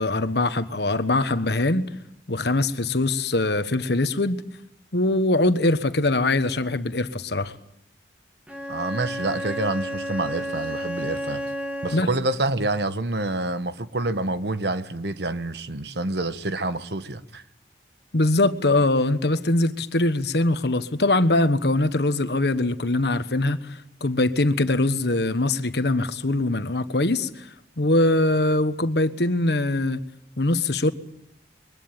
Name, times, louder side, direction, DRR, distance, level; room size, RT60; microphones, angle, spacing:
voice 1, 0.0-1.8 2.3-4.4 4.9-7.5 11.9-12.1 18.1-27.5 27.8-30.0 30.4-30.9, left 2 dB, 65° left, 1.4 m, -22 dB
Bowed string instrument, 8.5-12.3, equal, 5° right, 1.8 m, -31 dB
voice 2, 8.7-11.5 11.8-17.4, right 2 dB, 70° right, 1.2 m, -27 dB
23.0 x 20.5 x 9.0 m
head